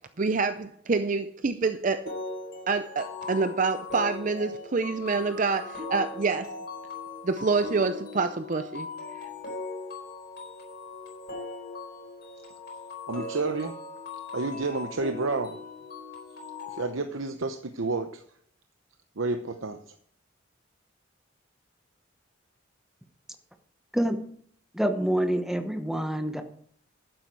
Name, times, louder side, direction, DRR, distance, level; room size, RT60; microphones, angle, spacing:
voice 1, 0.2-2.0 2.7-6.5 7.2-8.9, right 4 dB, 40° right, 9 dB, 0.5 m, -27 dB
sound 1, 2.1-16.8, left 3 dB, 50° left, 4.5 m, -39 dB
voice 2, 13.1-13.8 14.3-15.6 16.7-18.2 19.2-19.8, right 3 dB, 80° right, 7 dB, 0.8 m, -30 dB
voice 3, 24.7-26.4, right 1 dB, ahead, 6 dB, 1.0 m, -26 dB
11.5 x 9.3 x 4.7 m, 0.62 s
head